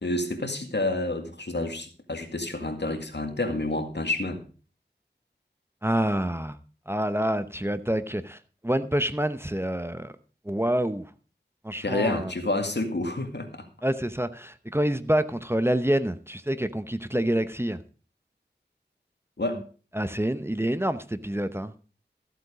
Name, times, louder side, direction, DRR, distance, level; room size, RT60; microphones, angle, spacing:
voice 1, 0.0-4.4 11.8-13.7 19.4-19.6, left 2 dB, 70° left, 2.0 m, -29 dB
voice 2, 5.8-6.6 6.9-10.1 10.4-11.1 11.6-12.3 13.8-17.8 19.9-21.7, right 1 dB, 15° right, 0.8 m, -27 dB
14.5 x 8.1 x 4.9 m
wide cardioid pair, 45°, 18 cm